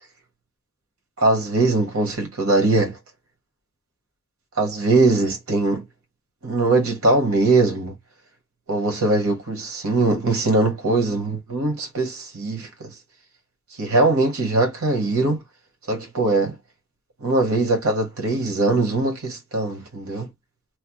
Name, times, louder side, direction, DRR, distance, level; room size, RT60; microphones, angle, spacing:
voice 1, 1.2-3.0 4.6-5.8 6.4-8.0 8.7-12.9 13.8-15.4 15.9-16.6 17.2-20.3, right 2 dB, 75° right, 1.3 m, -21 dB
3.1 x 2.1 x 3.0 m
head